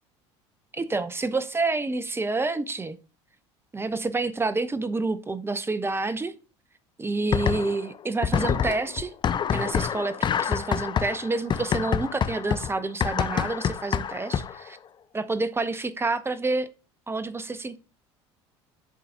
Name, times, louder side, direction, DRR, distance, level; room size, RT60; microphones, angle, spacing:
voice 1, 0.7-3.0 3.7-6.3 7.0-9.1 9.5-14.8 15.1-16.7 17.1-17.8, right 3 dB, 15° right, 0.7 m, -28 dB
sound 1, 7.3-7.9 8.2-14.7, left 8 dB, 30° left, 0.5 m, -27 dB
11.0 x 3.9 x 2.8 m
hypercardioid pair, 70°, 15 cm